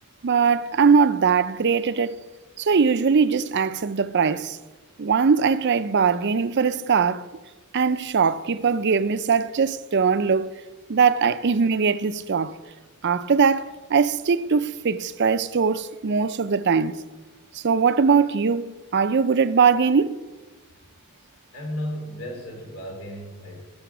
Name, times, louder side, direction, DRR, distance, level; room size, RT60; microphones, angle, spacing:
voice 1, 0.2-2.2 2.6-4.6 5.0-7.2 7.7-10.5 10.9-12.6 13.0-17.0 17.5-20.2, right 5 dB, 50° right, 0.5 m, -21 dB
voice 2, 21.5-23.6, equal, 80° left, 4.0 m, -34 dB
16.0 x 7.0 x 6.0 m
head